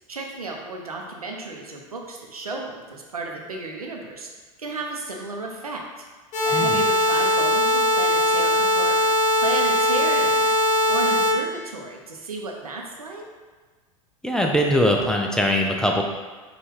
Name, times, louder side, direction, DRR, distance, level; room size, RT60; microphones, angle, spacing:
voice 1, 0.1-4.3 4.6-5.8 6.4-13.3, right 3 dB, 85° right, 1 dB, 0.6 m, -33 dB
sound 1, 6.3-11.3, equal, 40° left, 0.9 m, -20 dB
voice 2, 14.2-16.0, equal, 5° left, 0 dB, 0.4 m, -21 dB
4.8 x 2.4 x 3.2 m, 1.4 s
figure-of-eight pair, 85°, 18 cm